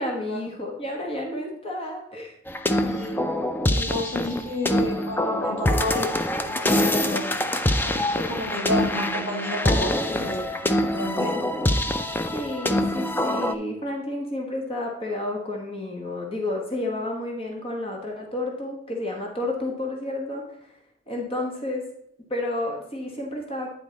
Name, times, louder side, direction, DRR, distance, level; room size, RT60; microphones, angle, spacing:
voice 1, 0.0-2.3 12.3-20.4 21.1-21.9 22.3-23.7, left 1 dB, 30° left, 0 dB, 1.2 m, -30 dB
sound 1, 2.5-13.5, left 1 dB, 10° left, 0.4 m, -25 dB
voice 2, 2.8-3.2 3.7-6.2 6.4-7.3 7.8-10.5 10.8-11.4, left 1 dB, 90° left, -3 dB, 2.8 m, -31 dB
9.3 x 4.5 x 4.0 m, 0.76 s
head